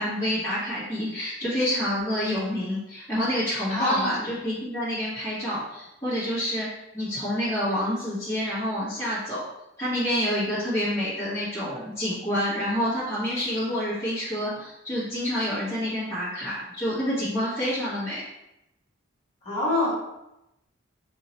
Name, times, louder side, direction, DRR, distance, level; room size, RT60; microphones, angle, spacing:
voice 1, 0.0-6.7 6.9-9.4 9.8-18.2, equal, 15° left, -12 dB, 1.2 m, -28 dB
voice 2, 3.7-4.2 19.4-19.9, left 2 dB, 30° left, -8 dB, 1.4 m, -25 dB
4.2 x 2.7 x 2.9 m, 0.88 s
head